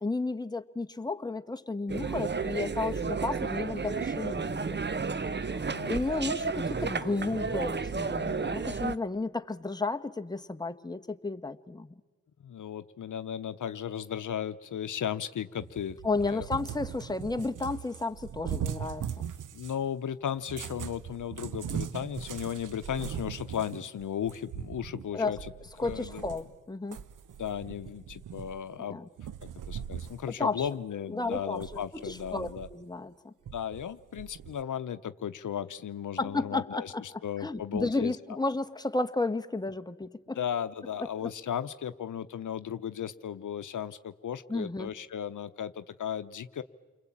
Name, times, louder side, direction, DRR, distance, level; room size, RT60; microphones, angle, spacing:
voice 1, 0.0-4.6 5.4-11.9 16.0-19.3 25.1-25.4 25.8-27.0 28.9-29.0 30.4-30.7 31.1-31.6 31.9-33.3 36.2-40.4 41.0-41.1 44.5-44.9, left 3 dB, 15° left, 8 dB, 1.3 m, -33 dB
sound 1, 1.9-8.9, right 4 dB, 35° right, 0.9 m, -32 dB
voice 2, 5.7-6.3 12.4-16.5 19.5-25.5 25.8-26.2 27.4-29.0 29.7-32.7 33.5-38.2 40.3-46.6, left 9 dB, 75° left, 12 dB, 0.8 m, -35 dB
Cat, 15.6-19.8 20.4-26.6 26.9-28.8 29.2-30.2 30.6-30.7 31.3-32.8 33.5-34.6, right 9 dB, 80° right, 0.8 m, -40 dB
29.5 x 22.0 x 8.7 m, 1.3 s
cardioid pair, 60°, 31 cm